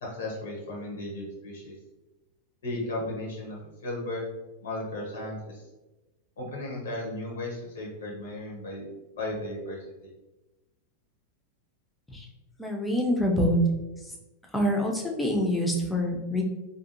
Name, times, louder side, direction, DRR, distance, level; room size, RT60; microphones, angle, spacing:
voice 1, 0.0-1.7 2.6-4.2 4.6-5.6 6.4-8.9 9.1-10.1, left 1 dB, 60° left, -2 dB, 0.8 m, -35 dB
voice 2, 12.6-13.6 14.5-16.4, left 1 dB, 5° left, 0 dB, 0.5 m, -26 dB
2.6 x 2.4 x 2.6 m, 1.1 s
figure-of-eight pair, 90°, 0 cm